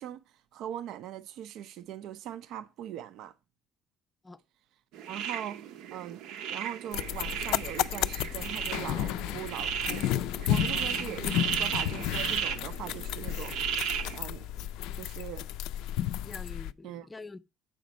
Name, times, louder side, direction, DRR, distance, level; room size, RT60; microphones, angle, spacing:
voice 1, 0.0-3.3 5.1-5.6 5.9-6.2 6.5-10.1 10.5-11.3 11.6-13.6 14.1-14.7 15.0-15.5 16.8-17.1, right 11 dB, 65° right, 0.5 m, -40 dB
sound 1, 4.9-14.2, right 8 dB, 80° right, 0.8 m, -35 dB
sound 2, 6.9-16.7, left 12 dB, 90° left, 0.4 m, -32 dB
voice 2, 10.6-11.2 16.2-17.4, left 3 dB, 10° left, 0.5 m, -46 dB
7.7 x 5.1 x 6.1 m
cardioid pair, 165°, 0 cm